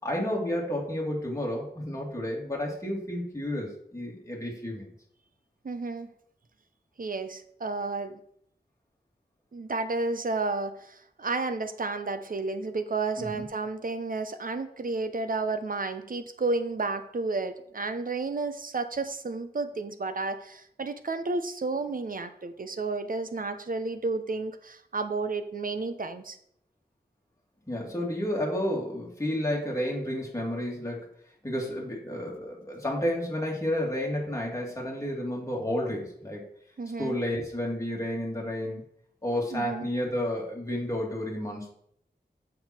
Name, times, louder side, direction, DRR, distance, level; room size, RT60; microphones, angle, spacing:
voice 1, 0.0-4.9 13.2-13.4 27.6-31.0 31.4-36.5 37.0-38.8 39.2-41.7, left 1 dB, 20° left, -2 dB, 2.7 m, -31 dB
voice 2, 5.6-6.1 7.0-8.2 9.5-26.4 36.8-37.2 39.5-39.9, right 3 dB, 55° right, 9 dB, 0.8 m, -32 dB
7.7 x 6.5 x 4.4 m, 0.70 s
wide cardioid pair, 85°, 17 cm